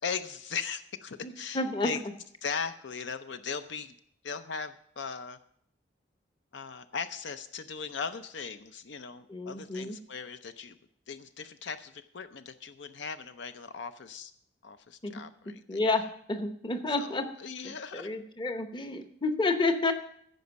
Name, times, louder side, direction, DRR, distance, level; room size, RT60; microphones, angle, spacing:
voice 1, 0.0-2.0 2.4-3.9 4.2-5.4 6.5-10.8 11.1-14.3 14.6-15.8 17.0-18.1, left 5 dB, 70° left, 11 dB, 0.6 m, -38 dB
voice 2, 1.2-2.0 9.3-10.0 15.0-15.1 15.7-16.0 16.3-17.3 17.6-19.9, left 3 dB, 25° left, 8 dB, 0.8 m, -30 dB
14.5 x 5.2 x 6.9 m, 0.68 s
head